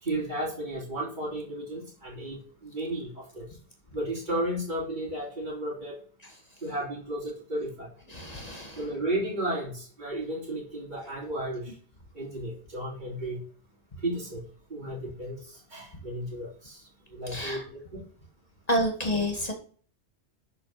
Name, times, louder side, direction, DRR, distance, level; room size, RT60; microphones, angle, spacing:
voice 1, 0.0-3.4 3.9-6.0 6.6-7.9 8.8-11.7 12.1-13.4 14.0-14.4 14.7-16.8 17.1-17.6 17.9-18.0, right 1 dB, 40° right, -5 dB, 3.1 m, -33 dB
voice 2, 8.1-8.9 17.3-17.7 18.7-19.5, equal, 35° left, 3 dB, 2.1 m, -30 dB
12.0 x 4.4 x 5.8 m, 0.43 s
omnidirectional pair, 1.2 m